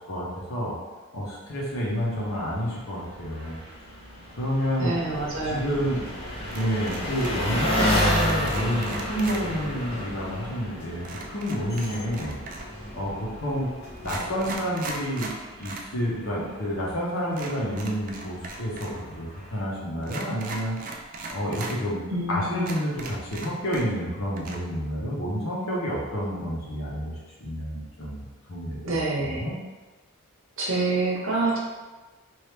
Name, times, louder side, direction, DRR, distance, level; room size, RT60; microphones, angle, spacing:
voice 1, 0.1-0.7 1.1-3.6 4.4-4.9 5.4-6.0 6.5-12.3 12.9-13.7 14.0-20.8 21.3-22.0 22.3-28.2 28.5-28.8 29.3-29.6, equal, 65° left, -5 dB, 0.9 m, -29 dB
Engine, 1.5-19.6, equal, 25° left, 0.5 m, -33 dB
voice 2, 4.8-5.8 22.1-22.7 28.8-29.5 30.6-31.6, right 2 dB, 60° right, -3 dB, 0.8 m, -27 dB
sound 1, 5.1-14.5, left 1 dB, 40° left, 1.2 m, -43 dB
sound 2, 6.5-7.5 7.7-9.4 11.0-12.8 13.5-13.6 14.0-15.9 16.2-16.3 17.3-19.0 19.2-19.3 20.0-21.8 22.2-22.3 22.6-24.1 24.4-24.6, right 3 dB, 35° right, 0.3 m, -38 dB
3.0 x 2.7 x 3.3 m, 1.2 s
head